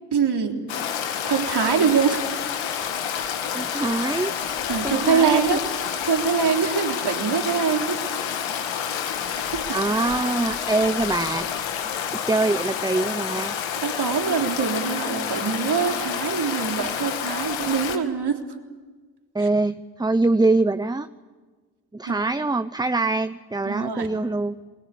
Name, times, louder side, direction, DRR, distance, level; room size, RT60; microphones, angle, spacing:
voice 1, 0.1-0.6 1.2-2.2 4.7-5.6 6.0-8.1 9.3-9.8 13.8-18.4 19.4-19.5 22.1-22.2 23.7-24.1, right 6 dB, 60° right, 3 dB, 3.6 m, -24 dB
Stream, 0.7-18.0, left 8 dB, 85° left, 1.9 m, -29 dB
voice 2, 3.5-4.3 4.8-5.6 9.7-11.5 12.3-13.6 19.3-21.1 21.9-24.6, right 2 dB, 10° right, 11 dB, 0.8 m, -24 dB
28.0 x 20.0 x 8.5 m, 1.4 s
supercardioid pair, 45°, 45 cm